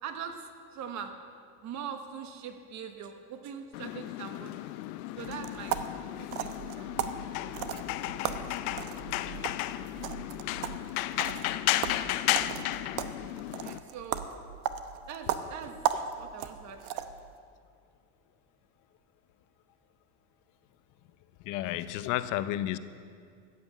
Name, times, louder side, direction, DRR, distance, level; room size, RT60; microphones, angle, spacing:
voice 1, 0.0-1.1 1.6-4.8 5.2-5.9 6.2-6.9 13.6-14.3 15.1-17.1, right 7 dB, 40° right, 6 dB, 1.4 m, -42 dB
sound 1, 3.7-13.8, left 15 dB, 90° left, 0.7 m, -34 dB
sound 2, 5.2-17.3, right 10 dB, 75° right, 0.9 m, -37 dB
voice 2, 21.4-22.8, left 13 dB, 45° left, 13 dB, 0.7 m, -31 dB
14.5 x 7.9 x 8.4 m, 2.2 s
supercardioid pair, 135°, 42 cm